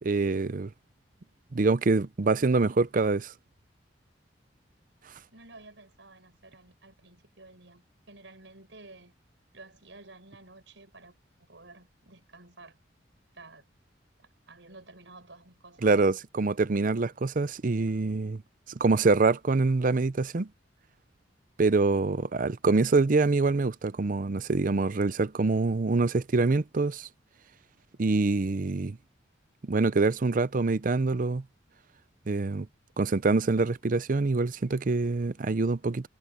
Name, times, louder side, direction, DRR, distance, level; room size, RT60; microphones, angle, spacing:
voice 1, 0.0-0.7 1.5-3.3 15.8-18.4 18.7-20.5 21.6-27.1 28.0-29.0 29.7-31.4 32.3-32.7 33.0-36.1, right 3 dB, 45° right, 0.6 m, -25 dB
voice 2, 5.3-9.1 9.5-11.2 11.5-12.8 13.3-13.7 14.5-15.9, right 2 dB, 90° right, 5.7 m, -52 dB
head